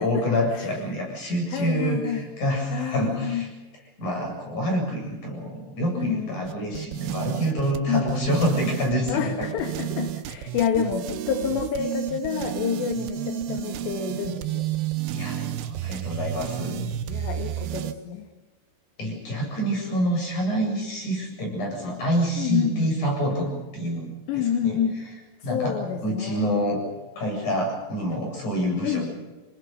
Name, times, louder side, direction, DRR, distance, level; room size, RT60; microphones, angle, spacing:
voice 1, 0.0-3.5 4.0-9.5 15.1-16.8 19.0-24.8 25.4-26.8 27.2-29.1, equal, 40° left, 1 dB, 9.1 m, -27 dB
voice 2, 1.5-2.2 2.7-3.5 6.0-6.5 7.9-8.1 9.1-14.7 16.7-18.3 22.4-23.0 24.3-25.0 25.4-26.5 28.8-29.1, left 8 dB, 70° left, 6 dB, 3.7 m, -28 dB
sound 1, 6.5-17.9, right 11 dB, 75° right, 2.5 m, -31 dB
28.5 x 19.5 x 6.8 m, 1.2 s
omnidirectional pair, 5.6 m